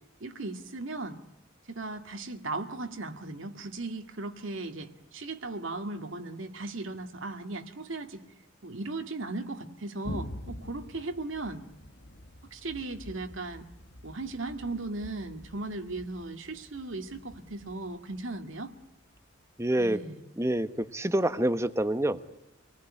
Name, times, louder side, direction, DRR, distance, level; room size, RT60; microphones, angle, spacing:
voice 1, 0.2-1.2 1.7-8.2 8.6-11.6 12.5-13.7 14.0-18.7 19.8-20.2, right 2 dB, 75° right, 6 dB, 2.0 m, -37 dB
Thunder, 10.0-19.5, left 1 dB, 60° left, 1.6 m, -46 dB
voice 2, 19.6-20.0 20.4-22.3, right 1 dB, 15° right, 12 dB, 1.1 m, -27 dB
27.0 x 20.0 x 10.0 m, 0.88 s
head